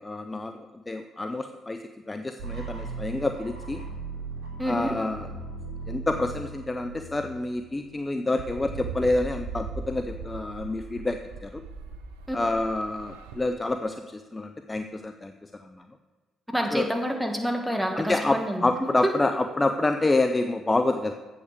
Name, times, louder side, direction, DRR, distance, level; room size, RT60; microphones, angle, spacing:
voice 1, 0.0-3.8 4.7-5.3 5.9-11.6 12.3-15.9 16.7-16.9 17.9-21.1, left 2 dB, 20° left, 8 dB, 0.5 m, -28 dB
sound 1, 2.4-8.3, right 4 dB, 65° right, 2.3 m, -38 dB
voice 2, 4.6-4.9 12.3-12.4 16.5-19.1, equal, ahead, 2 dB, 1.8 m, -28 dB
sound 2, 8.4-13.5, right 4 dB, 85° right, 0.7 m, -39 dB
7.9 x 5.7 x 6.7 m, 1.3 s
hypercardioid pair, 50°, 0 cm